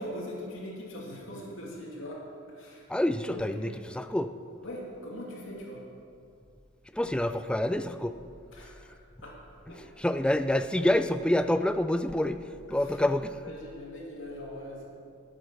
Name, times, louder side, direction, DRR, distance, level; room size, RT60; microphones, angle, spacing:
voice 1, 0.0-2.9 3.3-3.7 4.6-5.8 8.5-9.4 9.7-9.8 12.7-13.0 13.4-14.9, left 1 dB, 65° left, -3 dB, 2.8 m, -41 dB
voice 2, 2.9-4.3 6.9-8.1 10.0-12.4 12.7-13.4, left 1 dB, 5° left, 10 dB, 0.3 m, -27 dB
12.0 x 9.0 x 6.5 m, 2.4 s
head